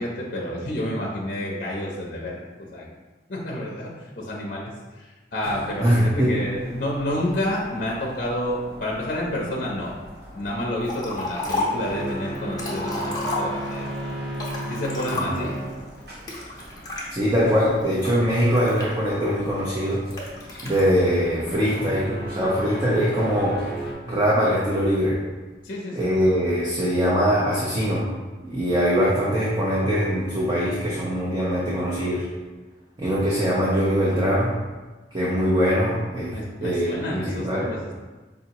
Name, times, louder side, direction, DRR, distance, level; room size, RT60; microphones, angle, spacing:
voice 1, 0.0-2.9 3.3-9.9 10.3-14.2 14.7-15.6 25.6-26.1 36.3-37.9, left 1 dB, 50° left, -2 dB, 0.6 m, -30 dB
sound 1, 5.4-23.9, right 1 dB, 60° right, 0.9 m, -36 dB
voice 2, 5.8-6.3 15.1-15.4 17.1-20.0 20.6-23.6 24.1-25.2 25.9-28.1 28.4-32.3 33.0-34.5 35.1-36.3 36.6-37.7, equal, 25° right, -7 dB, 0.6 m, -22 dB
Liquid, 10.9-11.9 12.4-13.9 14.3-15.6 16.3-17.1 17.7-19.3 20.1-20.8, left 2 dB, 20° left, 0.8 m, -31 dB
5.1 x 2.7 x 2.8 m, 1.2 s
head